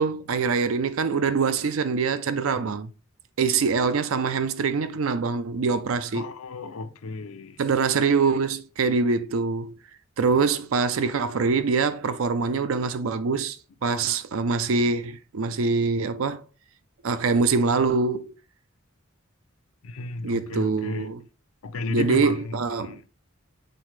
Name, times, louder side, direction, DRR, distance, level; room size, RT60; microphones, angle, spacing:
voice 1, 0.0-2.9 3.4-6.3 7.6-9.8 10.2-13.6 13.8-16.4 17.0-18.4 20.2-21.2 21.9-23.0, right 4 dB, 75° right, 0.5 m, -24 dB
voice 2, 6.1-7.6 19.8-21.1 21.6-23.0, left 3 dB, 85° left, 0.5 m, -34 dB
7.7 x 3.9 x 3.2 m
head